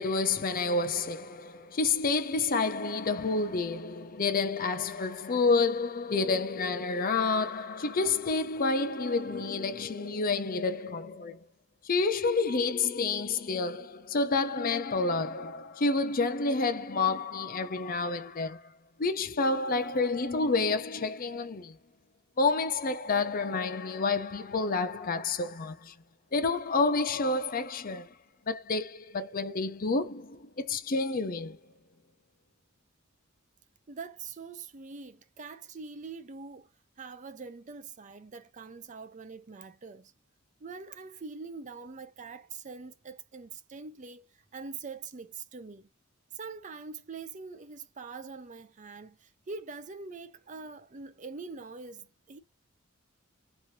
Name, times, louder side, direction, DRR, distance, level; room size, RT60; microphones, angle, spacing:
voice 1, 0.0-11.4 11.8-18.7 19.0-21.8 22.4-25.9 26.3-28.1 28.5-31.6, left 3 dB, 45° left, 0.6 m, -29 dB
voice 2, 33.9-36.7 37.0-40.1 40.6-45.9 46.3-52.4, right 4 dB, 35° right, 0.5 m, -44 dB
3.1 x 2.7 x 2.7 m
head